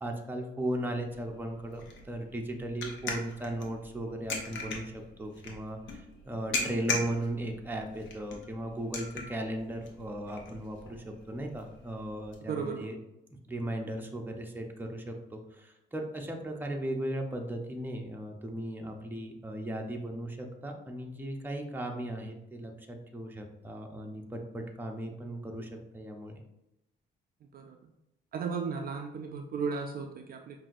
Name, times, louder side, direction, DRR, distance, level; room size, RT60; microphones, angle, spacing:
voice 1, 0.0-12.9 13.4-26.4, right 1 dB, 10° right, 1 dB, 0.7 m, -37 dB
sound 1, 1.1-12.4, left 3 dB, 70° left, 0.8 m, -40 dB
voice 2, 12.5-12.9 27.5-27.8 28.3-30.6, right 5 dB, 50° right, 4 dB, 0.4 m, -35 dB
5.6 x 2.6 x 2.5 m, 0.88 s
cardioid pair, 90°, 20 cm